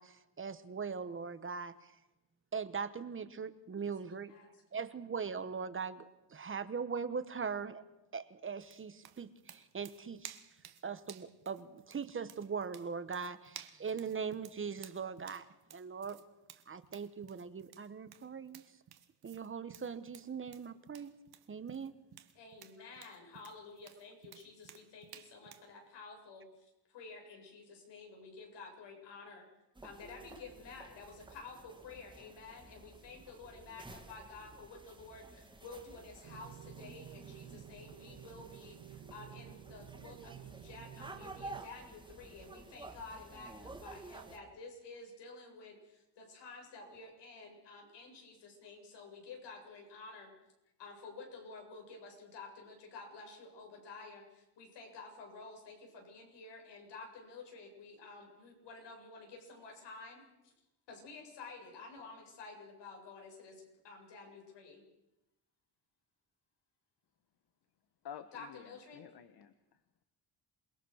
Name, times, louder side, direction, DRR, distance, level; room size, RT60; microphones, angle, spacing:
voice 1, 0.0-1.9 2.5-4.3 4.7-7.8 8.1-10.4 10.8-15.5 15.7-16.2 16.7-18.6 19.2-21.1 21.5-21.9, right 6 dB, 30° right, 12 dB, 1.2 m, -40 dB
voice 2, 4.3-4.8 22.3-29.5 29.8-50.3 50.8-60.5 60.9-64.9 68.3-69.0, left 3 dB, 85° left, 2 dB, 7.7 m, -51 dB
sound 1, 8.6-25.7, right 10 dB, 65° right, 1.7 m, -55 dB
sound 2, 29.7-44.4, right 2 dB, 10° right, 2.3 m, -52 dB
sound 3, 36.2-41.6, right 10 dB, 85° right, 2.0 m, -52 dB
voice 3, 68.0-69.8, left 9 dB, 65° left, 10 dB, 1.3 m, -50 dB
28.0 x 21.0 x 6.5 m, 0.93 s
cardioid pair, 150°, 41 cm